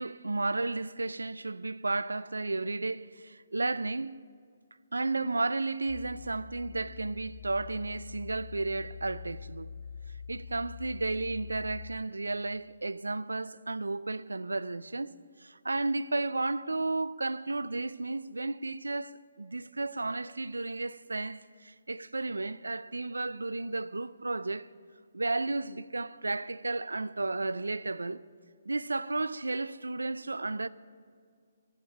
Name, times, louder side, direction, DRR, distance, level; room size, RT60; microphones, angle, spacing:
voice 1, 0.0-4.2 4.9-9.7 10.3-15.1 15.4-24.7 25.1-28.2 28.7-30.7, right 2 dB, 80° right, 0.4 m, -33 dB
sound 1, 5.9-12.0, left 7 dB, 70° left, 1.3 m, -45 dB
13.5 x 8.1 x 8.6 m
figure-of-eight pair, 140°, 0 cm